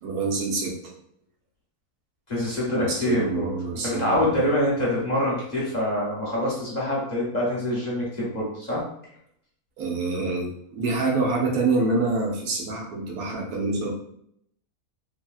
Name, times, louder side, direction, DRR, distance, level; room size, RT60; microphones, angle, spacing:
voice 1, 0.0-0.7 2.7-4.4 9.8-13.9, right 3 dB, 80° right, -1 dB, 1.2 m, -26 dB
voice 2, 2.3-8.8, left 1 dB, 40° left, -5 dB, 0.6 m, -25 dB
2.8 x 2.8 x 2.3 m, 0.72 s
omnidirectional pair, 1.6 m